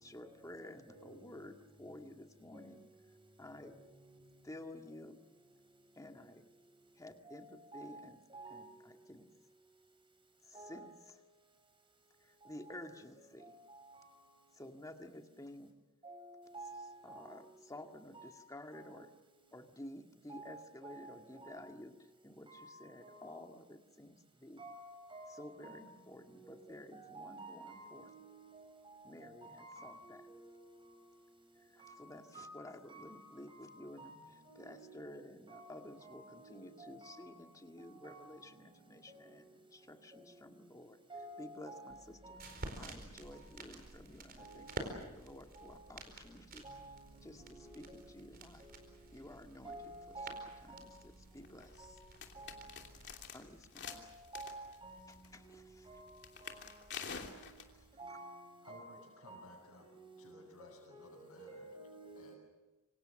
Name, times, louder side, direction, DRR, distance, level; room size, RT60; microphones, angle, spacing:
voice 1, 0.0-2.8 3.4-3.7 4.4-5.2 5.9-6.4 7.0-8.2 8.5-9.3 10.4-11.2 12.2-13.5 14.5-15.7 17.0-19.1 19.5-24.6 25.3-28.1 29.0-30.2 31.6-34.1 34.6-41.0 41.4-42.4 42.8-46.6 47.2-48.7 49.1-49.7 50.1-50.4 50.6-52.0 53.3-54.1 55.1-55.9 57.8-57.9, left 1 dB, 15° left, 1.9 m, -52 dB
voice 2, 16.0-16.8 17.1-17.3 18.1-18.3 20.3-20.5 20.8-21.0 21.4-21.6 22.5-22.7 23.0-23.2 24.6-25.8 26.4-28.1 29.4-30.5 31.8-32.0 32.3-32.5 32.9-33.1 33.5-33.6 34.0-34.2 34.5-34.6 35.5-35.7 36.0-37.2 38.0-38.2 41.1-41.8 42.2-42.5 44.4-44.6 45.6-45.7 46.6-46.9 47.6-48.0 49.6-50.9 51.8-51.9 52.4-52.6 54.3-55.0 55.9-56.1 56.4-56.6 58.0-58.3 58.6-58.9 59.3-59.5 60.6-62.4, right 2 dB, 25° right, 5.9 m, -51 dB
sound 1, 41.9-53.1, right 2 dB, 45° right, 4.6 m, -50 dB
sound 2, 51.3-57.9, left 6 dB, 50° left, 3.0 m, -49 dB
voice 3, 58.6-59.9 60.2-61.7 62.1-62.4, left 1 dB, 75° left, 6.4 m, -58 dB
26.5 x 26.0 x 6.5 m
head